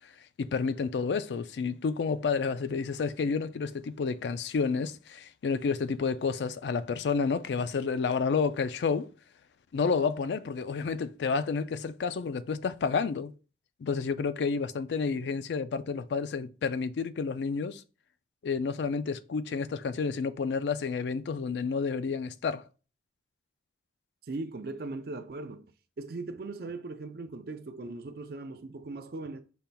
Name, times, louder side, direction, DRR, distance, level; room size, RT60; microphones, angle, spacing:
voice 1, 0.4-9.1 9.7-13.3 13.8-17.8 18.4-22.7, left 5 dB, 80° left, 0.4 m, -30 dB
voice 2, 24.3-25.7 26.0-29.4, right 3 dB, 60° right, 0.4 m, -39 dB
5.3 x 4.3 x 2.2 m
head